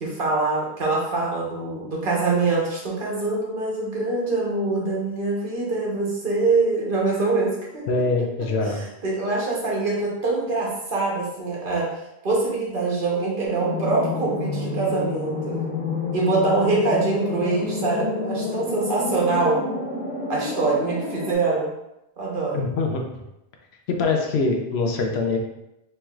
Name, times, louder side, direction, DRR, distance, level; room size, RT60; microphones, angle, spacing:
voice 1, 0.0-7.8 8.6-11.9 12.2-15.5 16.1-19.6 20.3-21.7 22.2-22.6, right 3 dB, 55° right, -4 dB, 1.1 m, -24 dB
voice 2, 7.9-8.8 22.5-23.0 23.9-25.4, left 3 dB, 80° left, 2 dB, 0.9 m, -23 dB
sound 1, 13.4-21.3, left 3 dB, 10° right, 0.8 m, -29 dB
4.4 x 3.1 x 2.3 m, 0.89 s
omnidirectional pair, 1.1 m